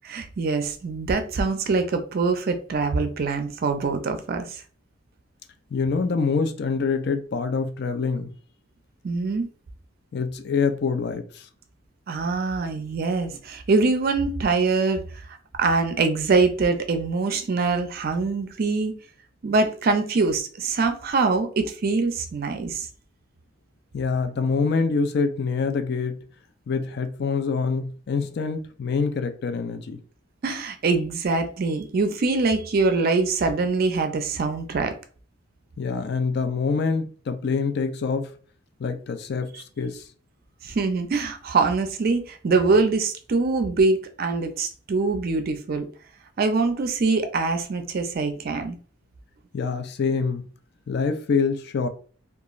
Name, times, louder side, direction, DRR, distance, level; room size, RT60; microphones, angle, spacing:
voice 1, 0.1-4.6 9.0-9.5 12.1-15.2 15.6-18.9 19.4-22.9 30.4-34.9 40.6-45.8 46.4-48.8, right 3 dB, 50° right, 0.4 m, -24 dB
voice 2, 5.7-8.3 10.1-11.5 23.9-26.2 26.7-30.0 35.8-38.3 38.8-40.0 49.5-50.5 50.9-51.9, left 5 dB, 55° left, 0.4 m, -25 dB
2.9 x 2.3 x 2.3 m
head